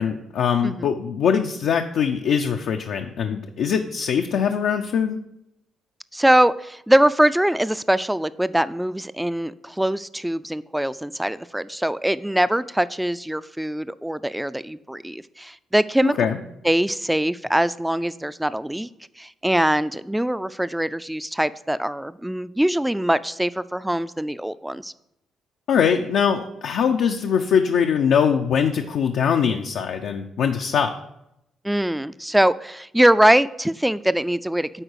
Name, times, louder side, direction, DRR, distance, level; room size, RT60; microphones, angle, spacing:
voice 1, 0.0-5.2 16.0-16.4 25.7-30.9, left 7 dB, 75° left, 4 dB, 0.5 m, -22 dB
voice 2, 6.1-16.2 16.6-18.9 19.2-24.9 31.6-34.8, right 1 dB, 5° right, 15 dB, 0.3 m, -22 dB
10.0 x 3.9 x 6.4 m, 0.83 s
cardioid pair, 90°, 0 cm